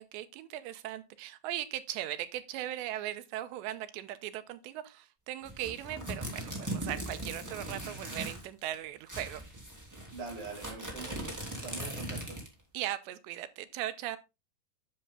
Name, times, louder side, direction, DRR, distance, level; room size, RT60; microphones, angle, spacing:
voice 1, 0.0-9.4 12.7-14.2, right 13 dB, 85° right, 2.9 m, -38 dB
sound 1, 5.4-8.5 8.7-8.8 9.1-12.6, right 1 dB, 5° right, 1.8 m, -40 dB
voice 2, 10.1-11.4 11.6-12.4, right 3 dB, 35° right, 3.5 m, -43 dB
10.5 x 6.7 x 3.7 m
omnidirectional pair, 5.2 m